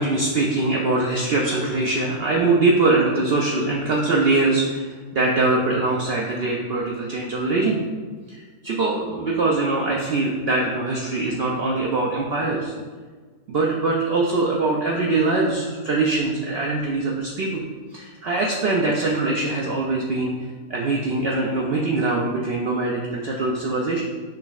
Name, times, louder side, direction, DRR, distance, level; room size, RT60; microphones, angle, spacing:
voice 1, 0.0-7.8 8.3-12.7 13.5-17.6 17.9-20.3 20.7-24.0, right 3 dB, 80° right, -2 dB, 0.5 m, -22 dB
5.9 x 3.0 x 2.4 m, 1.4 s
omnidirectional pair, 1.5 m